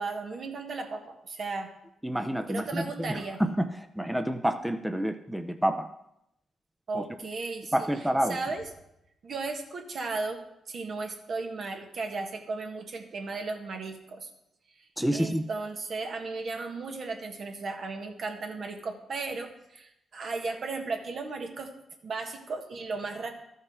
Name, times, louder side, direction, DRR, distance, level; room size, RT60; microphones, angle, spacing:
voice 1, 0.0-1.7 2.5-3.4 6.9-7.9 8.3-8.6 9.2-10.4 10.7-14.3 14.8-14.9 15.1-21.7 22.0-23.3, right 3 dB, 60° right, 3 dB, 1.5 m, -35 dB
voice 2, 2.0-5.9 6.9-7.1 7.7-8.4 15.0-15.5, equal, 5° right, 8 dB, 0.6 m, -28 dB
13.0 x 5.5 x 4.8 m, 0.82 s
cardioid pair, 65°, 0 cm